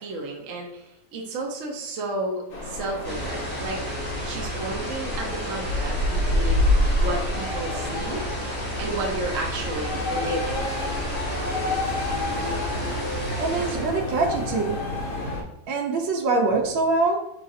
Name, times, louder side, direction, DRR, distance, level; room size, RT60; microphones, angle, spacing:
voice 1, 0.0-3.8 4.2-6.6 7.0-8.2 8.8-10.7, right 2 dB, 60° right, 0 dB, 0.8 m, -32 dB
sound 1, 2.5-15.4, left 2 dB, 70° left, 0.6 m, -28 dB
sound 2, 3.0-14.0, right 2 dB, 20° left, 0.7 m, -33 dB
voice 2, 13.3-14.8 15.7-17.2, right 3 dB, 80° right, 3 dB, 1.4 m, -24 dB
4.7 x 3.2 x 2.6 m, 0.81 s
omnidirectional pair, 2.1 m